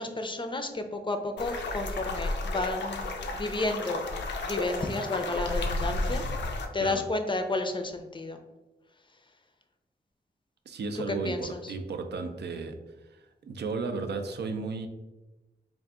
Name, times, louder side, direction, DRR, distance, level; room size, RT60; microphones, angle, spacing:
voice 1, 0.0-4.1 4.5-6.3 6.7-8.4 11.1-11.7, left 2 dB, 30° left, 6 dB, 0.4 m, -32 dB
sound 1, 1.4-6.7, left 2 dB, 90° left, 0.4 m, -32 dB
voice 2, 10.7-12.8 13.1-14.9, right 4 dB, 75° right, 7 dB, 0.4 m, -34 dB
3.7 x 2.4 x 3.5 m, 1.1 s
wide cardioid pair, 70°, 18 cm